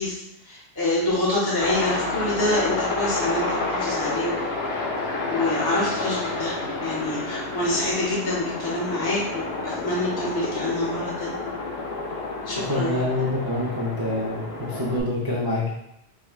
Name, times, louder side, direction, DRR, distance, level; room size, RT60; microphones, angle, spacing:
voice 1, 0.0-4.4 5.3-11.3 12.5-13.0, left 2 dB, 25° left, -6 dB, 0.8 m, -27 dB
Aircraft, 1.6-15.0, left 3 dB, 70° left, 0.9 m, -29 dB
voice 2, 12.7-15.6, left 1 dB, 30° right, -6 dB, 0.4 m, -26 dB
5.4 x 2.2 x 2.3 m, 0.79 s
omnidirectional pair, 1.1 m